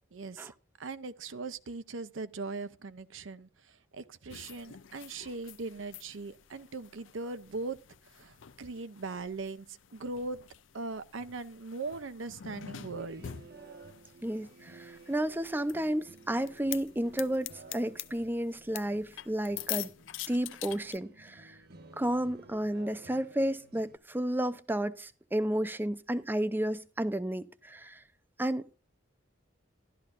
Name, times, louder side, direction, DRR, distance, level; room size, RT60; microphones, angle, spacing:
voice 1, 0.1-0.5 0.8-7.8 8.1-10.4 10.7-13.3, right 3 dB, 75° right, 0.6 m, -40 dB
sound 1, 4.3-21.0, left 12 dB, 70° left, 0.5 m, -46 dB
sound 2, 12.8-24.0, right 3 dB, 50° right, 1.0 m, -54 dB
voice 2, 14.2-19.9 20.3-21.6 22.0-28.0 28.4-28.7, right 1 dB, 10° right, 0.5 m, -32 dB
13.0 x 12.0 x 2.5 m
head